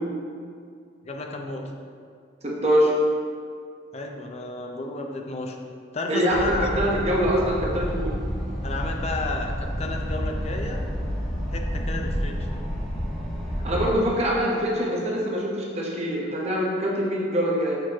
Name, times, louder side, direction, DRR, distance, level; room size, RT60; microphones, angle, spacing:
voice 1, 1.0-1.7 3.9-5.6 5.9-6.9 8.6-10.8 11.5-12.7, left 2 dB, 35° left, 2 dB, 0.5 m, -32 dB
voice 2, 2.4-2.9 6.1-8.1 13.6-17.8, equal, 35° right, -3 dB, 0.8 m, -24 dB
sound 1, 6.3-14.0, equal, 5° left, 1.4 m, -29 dB
6.6 x 6.1 x 2.9 m, 2.2 s
head